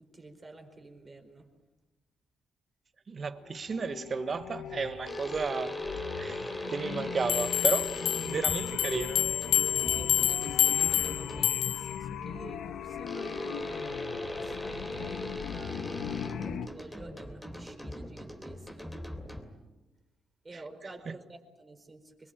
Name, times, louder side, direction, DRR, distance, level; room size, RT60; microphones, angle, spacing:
voice 1, 0.0-1.5 10.0-18.9 20.4-22.3, right 2 dB, 25° right, 4.6 m, -50 dB
voice 2, 3.1-5.8 6.2-9.3, right 5 dB, 40° right, 1.3 m, -33 dB
sound 1, 3.3-16.7, left 8 dB, 70° left, 1.2 m, -39 dB
sound 2, 5.1-11.7 13.1-19.7, left 1 dB, 5° left, 3.2 m, -40 dB
sound 3, 7.3-11.9, left 12 dB, 85° left, 0.9 m, -28 dB
25.0 x 22.0 x 9.1 m
cardioid pair, 90°, 0 cm